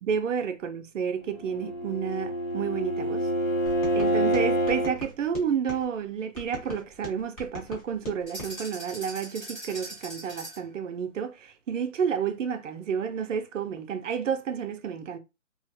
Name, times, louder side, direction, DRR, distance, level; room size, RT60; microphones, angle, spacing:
voice 1, 0.0-3.3 3.9-15.2, right 7 dB, 65° right, 0.6 m, -30 dB
Bowed string instrument, 1.3-5.0, right 1 dB, 80° left, 1.0 m, -27 dB
sound 1, 3.7-5.8 6.3-8.5, left 2 dB, 25° left, 1.0 m, -42 dB
sound 2, 8.3-10.7, right 1 dB, ahead, 0.6 m, -41 dB
2.5 x 2.1 x 2.7 m
hypercardioid pair, 145°, 40 cm